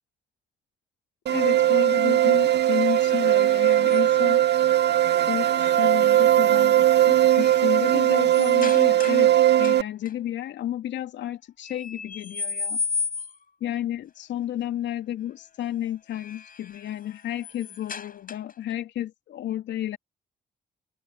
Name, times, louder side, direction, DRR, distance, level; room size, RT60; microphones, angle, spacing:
voice 1, 1.3-4.4 5.3-9.3 9.6-12.8 13.6-20.0, left 12 dB, 65° left, 2.9 m, -32 dB
sound 1, 1.3-9.8, right 12 dB, 60° right, 1.6 m, -19 dB
sound 2, 1.4-4.3 6.1-6.5 6.9-9.3 9.6-10.1 11.6-13.5 15.8-18.7, left 5 dB, 45° left, 6.6 m, -36 dB
open air
hypercardioid pair, 45°, 20 cm